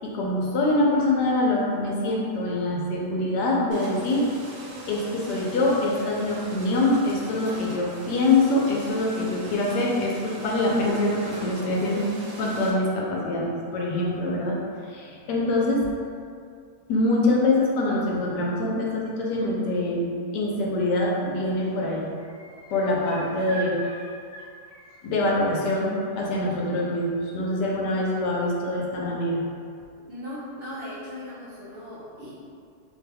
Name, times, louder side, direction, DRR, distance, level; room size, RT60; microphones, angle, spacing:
voice 1, 0.0-4.3 4.9-12.1 12.4-14.6 14.9-15.9 16.9-22.1 22.7-23.8 25.0-29.4, left 2 dB, 80° left, -3 dB, 1.2 m, -24 dB
sound 1, 3.7-12.7, right 2 dB, 85° right, 1.3 m, -41 dB
sound 2, 21.2-21.3 21.6-25.7 27.3-27.4, right 2 dB, 60° left, 0.7 m, -43 dB
voice 2, 30.1-32.3, left 1 dB, 55° right, -11 dB, 0.7 m, -38 dB
3.1 x 2.2 x 3.3 m, 2.3 s
omnidirectional pair, 1.8 m